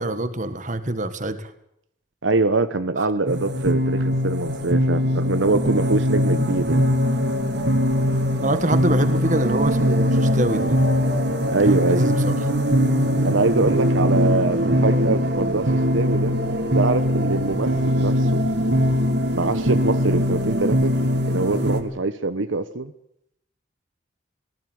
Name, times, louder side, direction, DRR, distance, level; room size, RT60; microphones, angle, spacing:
voice 1, 0.0-1.5 3.0-3.1 8.4-10.8 11.6-12.3, right 1 dB, 40° right, 11 dB, 1.7 m, -25 dB
voice 2, 2.2-6.8 11.5-12.0 13.2-16.3 16.7-18.4 19.3-20.9 21.3-22.9, right 3 dB, 85° right, 11 dB, 1.1 m, -23 dB
sound 1, 3.3-21.8, equal, 60° right, 2.5 m, -21 dB
19.0 x 15.5 x 9.5 m, 0.77 s
head